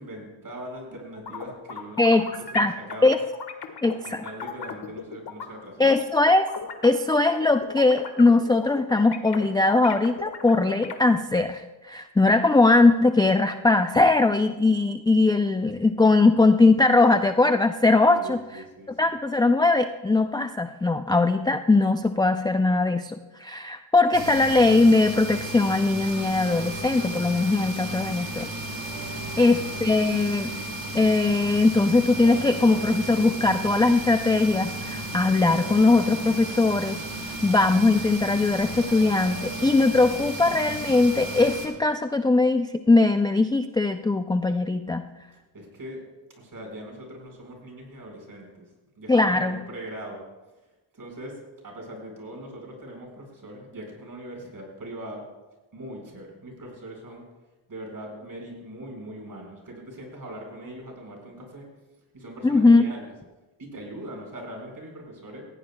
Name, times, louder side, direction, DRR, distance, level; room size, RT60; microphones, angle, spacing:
voice 1, 0.0-3.2 3.9-5.9 18.1-19.1 45.5-46.0 46.4-48.7 49.0-50.2 50.9-51.4 51.6-55.2 55.7-57.2 57.7-61.7 62.1-63.1 63.6-65.4, right 1 dB, 45° right, 1 dB, 4.9 m, -41 dB
sound 1, 1.2-5.5 5.9-11.0, left 6 dB, 55° left, 1.5 m, -37 dB
voice 2, 3.8-4.2 5.8-6.5 6.8-18.6 19.0-28.5 29.4-30.5 30.9-37.0 37.4-45.0 49.1-49.6 62.4-62.8, left 3 dB, 10° left, 8 dB, 0.3 m, -20 dB
sound 2, 24.1-41.7, right 1 dB, 70° right, 2.4 m, -34 dB
18.5 x 16.0 x 2.3 m, 1.1 s
cardioid pair, 95°, 48 cm